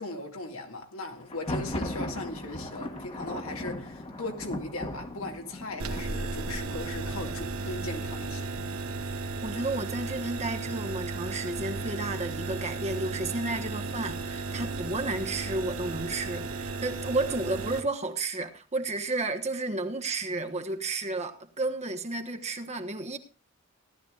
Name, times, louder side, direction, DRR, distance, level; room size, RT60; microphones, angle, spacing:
voice 1, 0.0-8.5, left 2 dB, 75° left, 2.3 m, -38 dB
Thunder, 1.2-9.0, left 1 dB, 30° left, 1.5 m, -38 dB
sound 1, 5.8-17.8, right 3 dB, 80° right, 1.4 m, -35 dB
voice 2, 9.4-23.2, right 2 dB, 30° right, 1.2 m, -32 dB
17.5 x 12.5 x 2.4 m
head